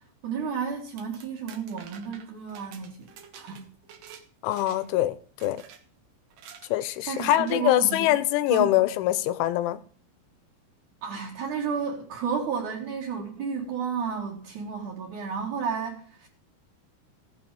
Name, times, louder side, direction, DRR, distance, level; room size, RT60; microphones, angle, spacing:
voice 1, 0.2-3.1 3.3-3.7 7.1-8.1 8.5-8.8 11.0-16.3, right 6 dB, 50° right, 3.0 m, -32 dB
sound 1, 0.8-4.2 4.5-5.0 5.4-5.8 6.3-6.7 7.2-7.6, right 8 dB, 65° right, 2.2 m, -49 dB
voice 2, 4.4-5.6 6.7-9.8, left 14 dB, 80° left, 3.0 m, -24 dB
16.0 x 8.9 x 5.3 m
omnidirectional pair, 5.5 m